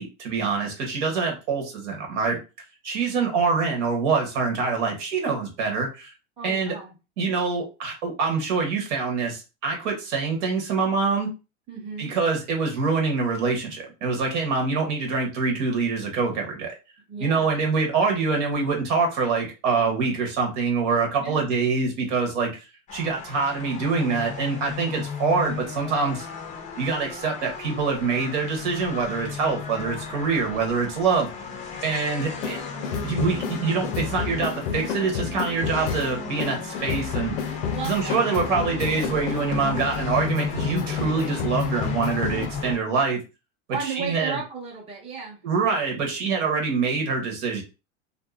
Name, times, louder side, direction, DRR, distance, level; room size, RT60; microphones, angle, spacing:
voice 1, 0.0-2.4 2.8-6.1 6.4-6.7 7.2-11.3 12.0-16.7 17.2-22.6 22.9-26.3 26.8-31.3 31.8-32.6 33.0-37.3 37.8-43.2 43.8-44.4 45.4-47.6, right 4 dB, 75° right, 1 dB, 1.3 m, -25 dB
voice 2, 6.4-6.9 11.7-12.1 17.1-17.5 21.2-21.4 37.7-38.3 43.7-45.4, right 5 dB, 15° right, -2 dB, 0.8 m, -34 dB
sound 1, 22.9-42.8, left 6 dB, 20° left, 0.5 m, -34 dB
sound 2, 32.4-42.5, left 6 dB, 75° left, 0.6 m, -31 dB
2.6 x 2.5 x 2.4 m, 0.29 s
supercardioid pair, 130°, 37 cm